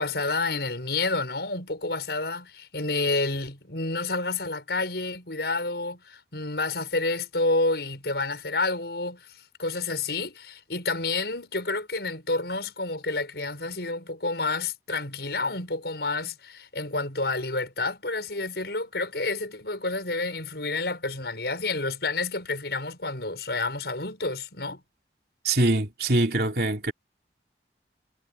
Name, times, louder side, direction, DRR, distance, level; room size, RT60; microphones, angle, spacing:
voice 1, 0.0-24.8, left 3 dB, 70° left, 6.5 m, -29 dB
voice 2, 25.4-26.9, right 2 dB, 60° right, 3.3 m, -23 dB
head